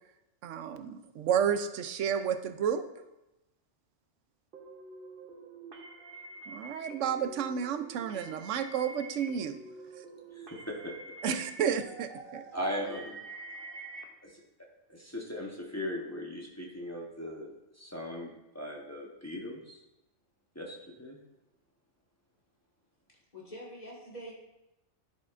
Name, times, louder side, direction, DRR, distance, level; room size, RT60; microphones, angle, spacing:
voice 1, 0.4-2.8 6.5-9.6 11.2-12.4, right 8 dB, 85° right, 8 dB, 1.0 m, -31 dB
sound 1, 4.5-14.0, right 3 dB, 50° right, 1.1 m, -47 dB
voice 2, 10.3-10.9 12.5-13.2 14.2-14.4 14.9-19.8 20.5-21.2, equal, 15° left, -2 dB, 1.0 m, -39 dB
voice 3, 23.1-24.3, equal, 35° left, -4 dB, 2.1 m, -45 dB
10.5 x 7.5 x 2.5 m, 0.94 s
omnidirectional pair, 1.2 m